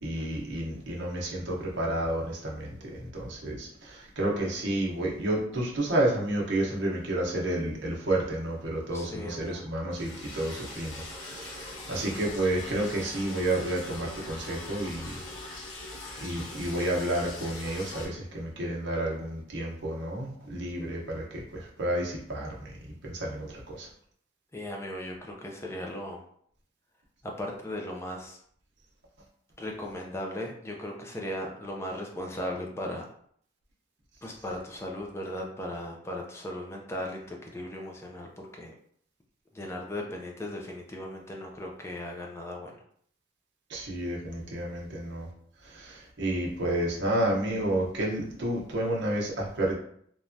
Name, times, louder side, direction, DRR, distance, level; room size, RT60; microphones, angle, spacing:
voice 1, 0.0-15.2 16.2-22.7 23.0-23.9 43.7-45.3 45.6-49.7, right 1 dB, 60° right, -3 dB, 0.8 m, -30 dB
voice 2, 8.9-9.7 24.5-26.2 27.2-28.4 29.6-33.1 34.2-38.7 39.5-42.8, left 1 dB, 15° left, 0 dB, 0.3 m, -37 dB
Liquid, 9.9-18.1, left 2 dB, 85° left, 0.7 m, -42 dB
3.1 x 2.2 x 2.5 m, 0.64 s
head